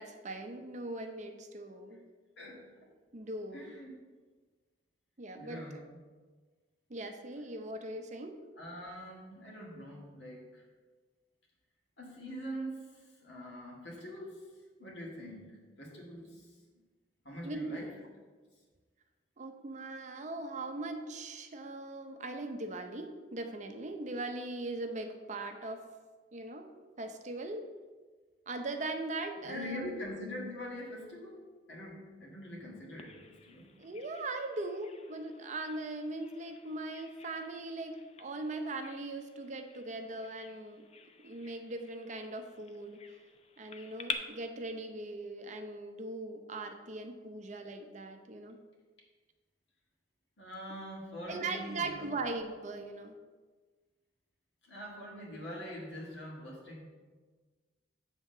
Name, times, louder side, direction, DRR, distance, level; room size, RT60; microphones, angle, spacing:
voice 1, 0.0-2.0 3.1-3.7 5.2-5.8 6.9-8.4 17.4-17.9 19.4-25.8 26.3-26.7 27.0-27.7 28.5-29.9 33.8-40.9 41.2-43.0 43.6-48.6 51.3-53.1, right 2 dB, 40° right, 5 dB, 0.6 m, -40 dB
voice 2, 2.4-2.9 3.5-3.9 5.4-5.8 8.6-10.6 12.0-14.4 14.8-16.6 17.2-17.9 29.4-31.4 31.7-33.7 50.4-52.0 54.7-56.8, equal, 75° left, -2 dB, 1.9 m, -44 dB
Bird vocalization bird call bird song, 33.0-44.1, left 6 dB, 35° left, 0.4 m, -48 dB
7.6 x 3.6 x 6.5 m, 1.4 s
head